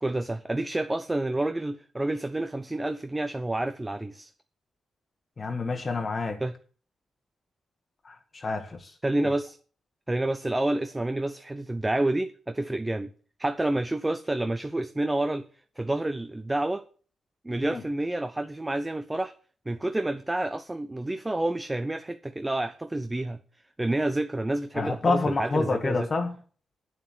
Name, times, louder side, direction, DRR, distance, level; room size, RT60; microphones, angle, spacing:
voice 1, 0.0-4.3 6.4-6.5 9.0-9.6 10.1-13.1 13.4-15.5 15.8-16.8 17.4-19.3 19.7-23.4 23.8-26.1, right 1 dB, 15° right, 0.6 m, -29 dB
voice 2, 5.4-6.4 8.0-8.9 17.7-17.8 24.7-26.3, left 3 dB, 35° left, 1.4 m, -28 dB
9.0 x 7.4 x 8.1 m
cardioid pair, 105°, 0 cm